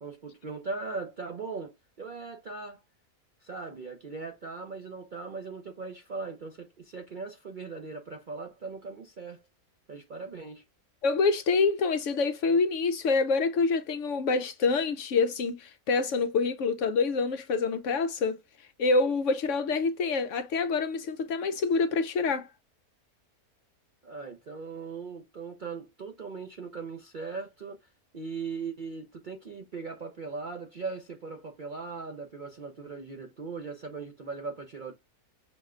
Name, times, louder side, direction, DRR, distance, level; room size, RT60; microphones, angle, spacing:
voice 1, 0.0-2.8 3.4-9.4 9.9-10.6 24.0-34.9, right 4 dB, 55° right, 0.5 m, -39 dB
voice 2, 11.0-18.4 18.8-22.5, left 4 dB, 65° left, 0.8 m, -26 dB
6.2 x 2.2 x 3.6 m
omnidirectional pair, 1.6 m